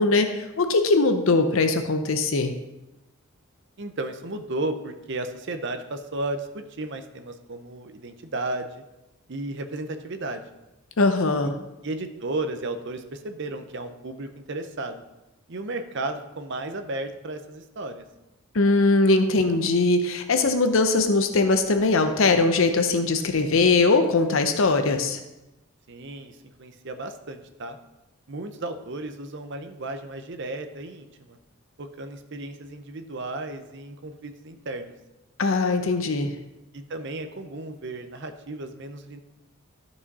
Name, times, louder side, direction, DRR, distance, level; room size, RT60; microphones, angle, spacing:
voice 1, 0.0-2.5 11.0-11.5 18.5-25.2 35.4-36.3, left 3 dB, 65° left, 7 dB, 0.6 m, -21 dB
voice 2, 3.8-8.8 9.3-10.4 11.4-11.5 11.8-15.0 15.5-18.0 25.9-27.8 28.3-31.4 31.8-34.9 36.7-39.2, right 2 dB, 55° right, 8 dB, 0.7 m, -34 dB
13.0 x 4.8 x 4.1 m, 0.98 s
head